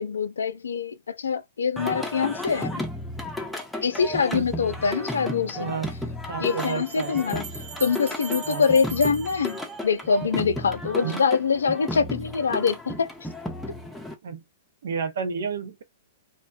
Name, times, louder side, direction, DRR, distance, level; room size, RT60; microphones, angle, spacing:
voice 1, 0.0-2.8 3.8-5.7 6.4-7.4 7.8-13.1, left 5 dB, 70° left, 0.4 m, -24 dB
Singing, 1.8-14.1, left 1 dB, 5° left, 0.7 m, -34 dB
voice 2, 5.5-5.9 6.3-7.2 8.5-8.6 11.0-11.2 14.2-14.4 14.8-15.8, right 6 dB, 65° right, 0.6 m, -31 dB
Bell, 6.5-10.4, right 3 dB, 40° right, 1.0 m, -40 dB
2.6 x 2.1 x 2.3 m
figure-of-eight pair, 110°, 0 cm